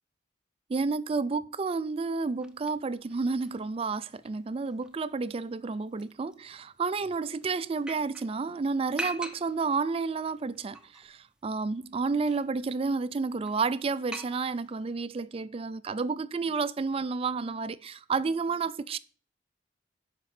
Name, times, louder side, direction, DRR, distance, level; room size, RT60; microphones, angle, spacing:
voice 1, 0.7-19.0, right 4 dB, 30° right, 0.3 m, -31 dB
sound 1, 2.0-14.9, right 1 dB, 5° right, 0.7 m, -46 dB
10.5 x 5.2 x 4.9 m
head